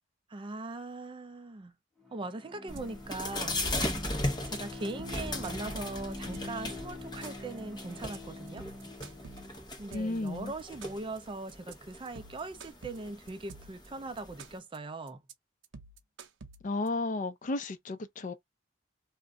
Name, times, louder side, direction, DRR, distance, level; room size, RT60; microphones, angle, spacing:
voice 1, 0.3-1.8 2.1-3.7 4.4-8.7 9.8-15.2, right 2 dB, 25° right, 0.4 m, -40 dB
Bowed string instrument, 2.0-9.7, left 2 dB, ahead, 1.0 m, -44 dB
sound 1, 2.7-14.6, left 1 dB, 25° left, 0.8 m, -38 dB
sound 2, 2.8-3.1 3.4-4.0 4.3-4.6 4.9-6.7 7.0-7.6 7.9-8.2 8.5-10.3 10.6-11.2 11.5-11.7 12.1-13.9 14.2-14.8 15.1-15.3 15.6-16.9, right 4 dB, 80° right, 0.6 m, -49 dB
voice 2, 9.9-10.5 16.6-18.3, left 2 dB, 45° left, 0.5 m, -33 dB
2.4 x 2.1 x 3.6 m
head